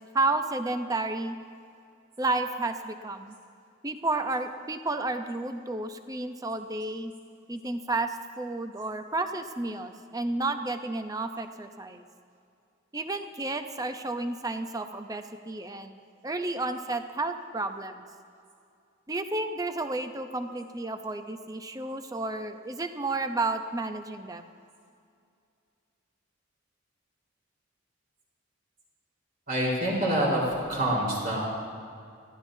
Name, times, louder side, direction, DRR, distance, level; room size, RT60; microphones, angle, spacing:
voice 1, 0.1-1.4 2.2-3.3 3.8-7.1 7.5-12.0 12.9-15.9 16.2-18.1 19.1-24.4, right 2 dB, 15° right, 7 dB, 0.6 m, -31 dB
voice 2, 29.5-31.4, right 1 dB, 45° right, -5 dB, 4.1 m, -26 dB
22.0 x 15.0 x 2.7 m, 2.4 s
head